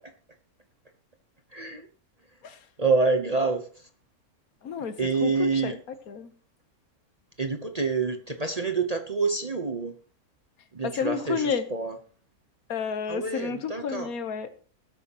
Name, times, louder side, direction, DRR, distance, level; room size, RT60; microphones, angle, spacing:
voice 1, 1.5-1.9 2.8-3.7 5.0-5.8 7.4-9.9 10.7-12.0 13.1-14.1, right 4 dB, 30° right, 6 dB, 0.9 m, -27 dB
voice 2, 4.6-5.8 6.1-6.3 10.8-11.6 12.7-14.5, left 6 dB, 70° left, 11 dB, 1.5 m, -31 dB
19.5 x 8.3 x 3.0 m, 0.41 s
omnidirectional pair, 1.6 m